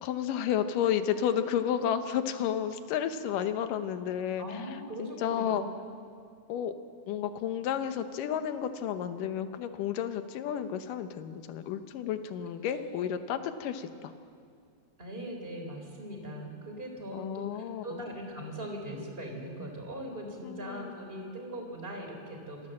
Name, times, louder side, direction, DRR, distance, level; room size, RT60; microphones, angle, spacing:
voice 1, 0.0-4.4 5.0-5.6 6.5-6.7 7.1-14.1 17.1-18.0 20.4-21.0, left 9 dB, 85° left, 9 dB, 2.6 m, -32 dB
voice 2, 4.4-5.6 12.8-13.1 15.0-22.7, equal, 15° right, 2 dB, 3.7 m, -40 dB
26.0 x 16.0 x 7.7 m, 2.3 s
omnidirectional pair, 3.7 m